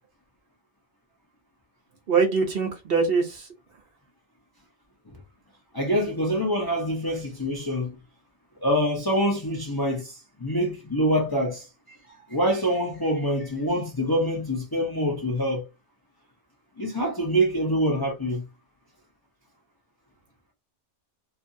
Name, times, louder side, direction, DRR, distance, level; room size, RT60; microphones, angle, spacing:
voice 1, 2.1-3.5, right 5 dB, 60° right, 0.8 m, -23 dB
voice 2, 5.7-8.0 8.6-12.0 12.3-15.7 16.8-18.4, equal, 25° left, 0.6 m, -25 dB
2.7 x 2.5 x 2.6 m
omnidirectional pair, 1.2 m